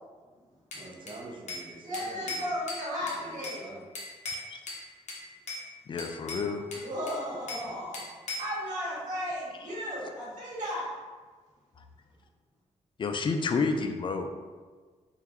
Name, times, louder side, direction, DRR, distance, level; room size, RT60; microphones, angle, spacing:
Bell / Glass, 0.7-1.7 1.9-3.6 3.9-4.8 5.1-5.6 6.0-7.7 7.9-8.6, left 2 dB, 65° left, 0.8 m, -39 dB
voice 1, 0.8-2.5 3.1-3.8 7.6-7.8, right 2 dB, 40° right, -1 dB, 0.6 m, -46 dB
voice 2, 1.8-3.6 6.8-8.1 8.4-10.9, equal, 75° right, -7 dB, 1.4 m, -35 dB
voice 3, 5.9-6.8 13.0-14.3, left 4 dB, 40° left, 6 dB, 0.3 m, -30 dB
3.7 x 2.2 x 2.9 m, 1.4 s
cardioid pair, 85°, 13 cm